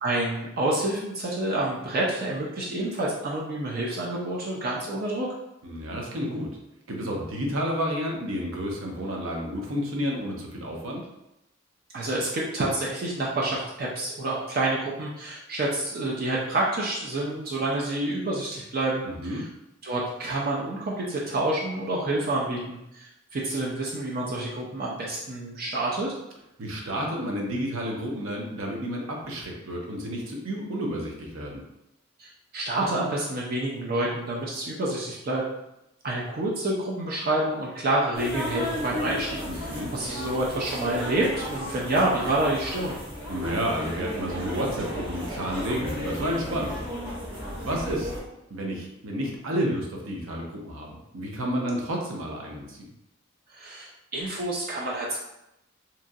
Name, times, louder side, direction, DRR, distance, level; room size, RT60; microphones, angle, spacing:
voice 1, 0.0-5.3 11.9-19.0 19.4-19.5 19.8-26.1 32.2-35.4 36.0-43.0 53.5-55.2, right 2 dB, 45° right, -4 dB, 0.4 m, -28 dB
voice 2, 5.6-6.5 6.9-11.1 19.0-19.5 26.6-31.6 39.5-39.9 43.3-46.8 47.6-48.1 48.5-52.9, equal, 85° right, 0 dB, 0.6 m, -31 dB
sound 1, 38.1-48.2, equal, 25° right, 0.9 m, -34 dB
2.9 x 2.4 x 2.6 m, 0.87 s
head